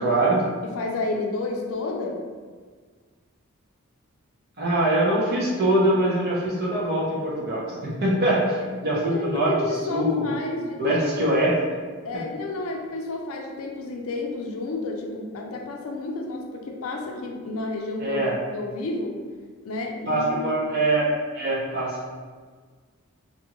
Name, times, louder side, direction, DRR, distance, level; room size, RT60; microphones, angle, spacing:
voice 1, 0.0-0.5 4.6-8.6 8.8-9.5 9.9-10.3 10.8-11.5 18.0-18.4 20.1-21.1 21.3-22.1, right 1 dB, 45° right, -5 dB, 0.7 m, -23 dB
voice 2, 0.6-2.2 8.6-8.7 9.1-11.3 12.0-18.3 18.5-19.2 19.6-20.6, left 2 dB, 70° left, 2 dB, 0.4 m, -31 dB
2.6 x 2.4 x 2.9 m, 1.5 s
head